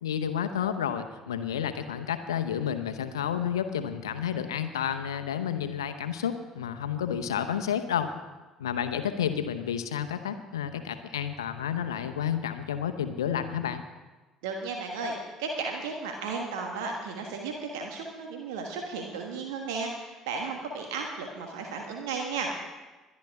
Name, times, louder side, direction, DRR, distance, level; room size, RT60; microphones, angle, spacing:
voice 1, 0.0-8.1 8.6-13.8, left 9 dB, 80° left, 9 dB, 0.8 m, -30 dB
voice 2, 14.4-22.7, right 4 dB, 70° right, 2 dB, 1.4 m, -34 dB
22.0 x 10.5 x 3.6 m, 1.2 s
figure-of-eight pair, 55°, 2 cm